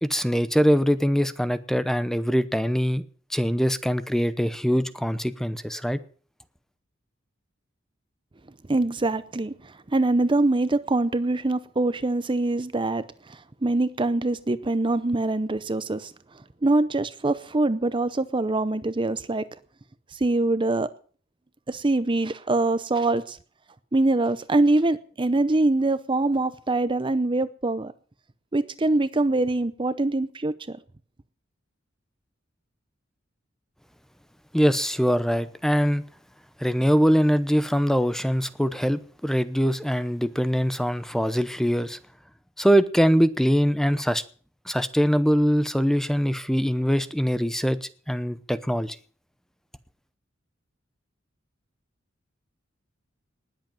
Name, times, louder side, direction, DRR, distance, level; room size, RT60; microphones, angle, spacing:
voice 1, 0.0-3.0 3.3-6.0 34.5-36.0 36.6-42.0 42.6-44.2 44.7-49.0, equal, ahead, 0.8 m, -23 dB
voice 2, 8.7-19.5 20.1-20.9 21.7-23.4 23.9-27.9 28.5-30.8, right 2 dB, 25° right, 0.6 m, -24 dB
19.5 x 8.1 x 7.4 m
head